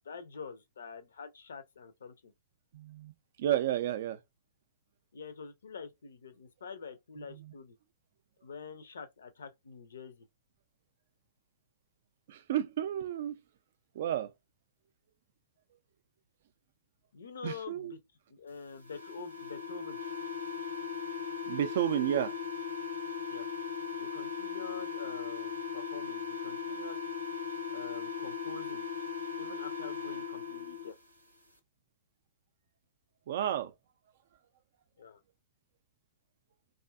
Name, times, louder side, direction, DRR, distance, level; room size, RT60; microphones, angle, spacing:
voice 1, 0.0-2.3 5.1-7.7 8.4-10.2 17.1-18.0 18.3-20.0 23.3-23.5 24.0-27.0 27.7-28.9 29.4-30.9 35.0-35.2, left 5 dB, 65° left, 0.5 m, -46 dB
voice 2, 2.7-3.1 3.4-4.2 7.3-7.5 12.3-13.4 14.0-14.3 17.4-18.0 21.5-22.3 33.3-33.7, right 11 dB, 50° right, 0.3 m, -31 dB
sound 1, 18.8-30.9, left 5 dB, 85° right, 0.6 m, -38 dB
2.6 x 2.4 x 2.2 m
figure-of-eight pair, 110°, 0 cm